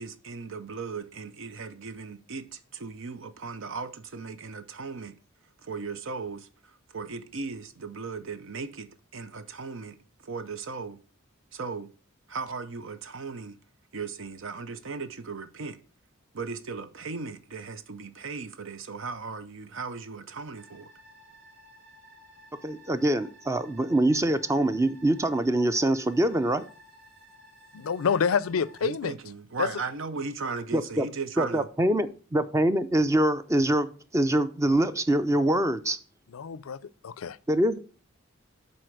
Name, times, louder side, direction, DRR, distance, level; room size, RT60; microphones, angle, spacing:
voice 1, 0.0-5.2 5.6-11.0 11.5-11.9 12.3-13.6 13.9-15.8 16.3-20.9 28.8-31.7, right 4 dB, 65° right, 0.6 m, -37 dB
sound 1, 20.5-28.8, equal, 45° right, 2.1 m, -54 dB
voice 2, 22.6-26.6 30.7-31.1 31.4-36.0 37.5-37.8, right 1 dB, 15° right, 0.5 m, -24 dB
voice 3, 27.7-29.1 29.6-29.7 36.3-36.8 37.0-37.4, left 6 dB, 80° left, 0.4 m, -27 dB
7.8 x 4.2 x 6.4 m
head